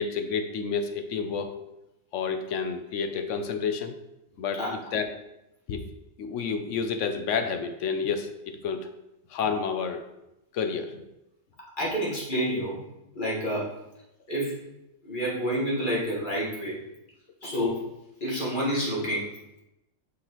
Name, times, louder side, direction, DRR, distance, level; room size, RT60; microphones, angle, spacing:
voice 1, 0.0-1.5 2.1-3.9 4.4-5.1 5.7-5.9 6.2-8.9 9.3-10.0 10.5-11.0, left 5 dB, 70° left, 7 dB, 1.0 m, -30 dB
voice 2, 11.8-12.8 13.2-13.7 14.3-14.6 15.0-16.8 17.4-17.9 18.2-19.3, equal, 40° left, -5 dB, 1.9 m, -28 dB
6.2 x 5.8 x 3.0 m, 0.90 s
omnidirectional pair, 1.4 m